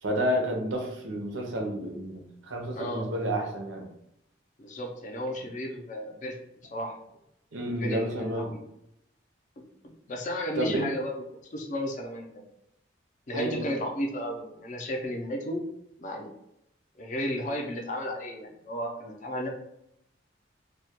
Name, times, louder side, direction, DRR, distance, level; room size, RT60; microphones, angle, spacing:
voice 1, 0.0-3.9 7.5-8.6 10.6-10.9 13.3-13.6, equal, 85° right, 2 dB, 0.6 m, -30 dB
voice 2, 2.8-3.2 4.6-6.4 6.7-7.0 7.7-8.6 9.6-11.2 11.5-12.3 13.3-15.7 16.0-16.3 17.0-19.5, equal, 40° left, 2 dB, 0.4 m, -34 dB
2.2 x 2.1 x 2.8 m, 0.80 s
head